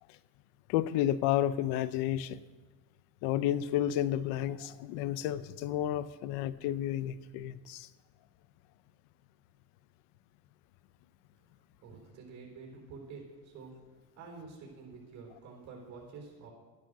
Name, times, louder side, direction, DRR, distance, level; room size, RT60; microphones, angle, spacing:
voice 1, 0.7-2.4 3.2-7.9, left 12 dB, 85° left, 17 dB, 0.7 m, -31 dB
voice 2, 11.8-13.8 14.2-16.5, right 4 dB, 50° right, 0 dB, 3.9 m, -48 dB
11.0 x 10.5 x 6.4 m, 1.3 s
cardioid pair, 110°, 36 cm